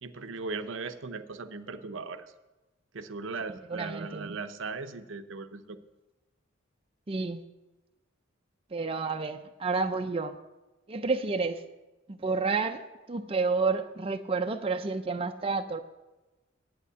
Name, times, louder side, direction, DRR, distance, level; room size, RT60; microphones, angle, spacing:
voice 1, 0.0-2.3 2.9-5.8, right 4 dB, 65° right, 10 dB, 0.7 m, -38 dB
voice 2, 3.7-4.4 7.1-7.4 8.7-10.4 10.9-11.6 12.1-15.8, right 4 dB, 30° right, 6 dB, 0.5 m, -30 dB
8.7 x 8.4 x 8.3 m, 1.1 s
head